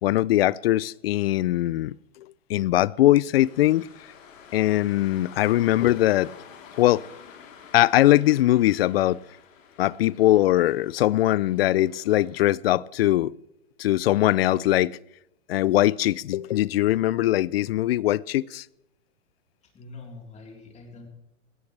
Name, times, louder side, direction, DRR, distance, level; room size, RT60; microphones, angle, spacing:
voice 1, 0.0-3.9 4.5-6.3 6.8-7.0 7.7-9.2 9.8-13.3 13.8-15.0 15.5-18.7, left 15 dB, 50° left, 0.5 m, -21 dB
sound 1, 3.4-12.4, left 7 dB, 70° left, 3.5 m, -49 dB
voice 2, 19.6-21.1, left 3 dB, 15° left, 3.8 m, -44 dB
21.0 x 18.0 x 3.3 m
hypercardioid pair, 135°, 39 cm